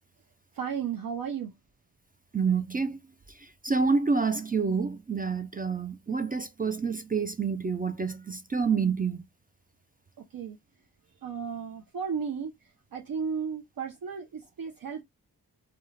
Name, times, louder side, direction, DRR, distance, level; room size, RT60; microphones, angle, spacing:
voice 1, 0.5-1.5 10.2-10.6 11.2-15.0, right 6 dB, 60° right, 0.6 m, -34 dB
voice 2, 2.3-3.0 3.4-9.2, right 5 dB, 25° right, 0.3 m, -28 dB
2.3 x 2.2 x 3.1 m
cardioid pair, 40°, 40 cm